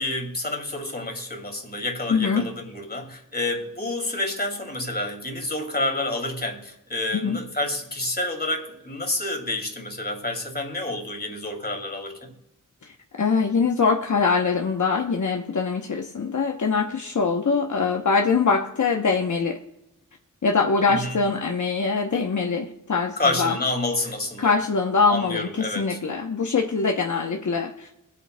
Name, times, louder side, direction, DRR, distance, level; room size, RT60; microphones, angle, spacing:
voice 1, 0.0-12.3 20.9-21.1 23.2-24.5 25.1-26.0, left 2 dB, 30° left, 3 dB, 2.5 m, -29 dB
voice 2, 2.1-2.4 7.1-7.4 12.9-19.6 20.4-23.6 24.4-27.9, left 4 dB, 65° left, 2 dB, 0.9 m, -23 dB
23.5 x 8.4 x 2.2 m, 0.89 s
wide cardioid pair, 85°, 32 cm